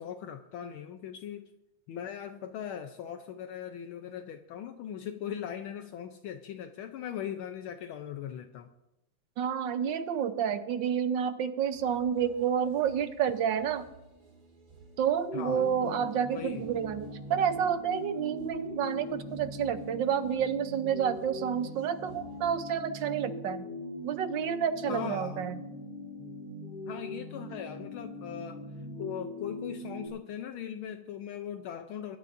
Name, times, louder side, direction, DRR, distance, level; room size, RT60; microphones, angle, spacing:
voice 1, 0.0-1.5 1.9-8.7 15.3-16.6 24.9-25.4 26.9-28.6 29.0-32.2, left 9 dB, 75° left, 7 dB, 1.5 m, -39 dB
voice 2, 9.4-13.9 15.0-23.7 24.0-25.6, right 8 dB, 65° right, 9 dB, 1.3 m, -29 dB
sound 1, 11.7-22.5, right 3 dB, 45° right, 2.4 m, -56 dB
sound 2, 15.2-30.1, left 1 dB, 45° left, 4.1 m, -41 dB
23.5 x 12.0 x 2.6 m, 0.91 s
omnidirectional pair, 2.4 m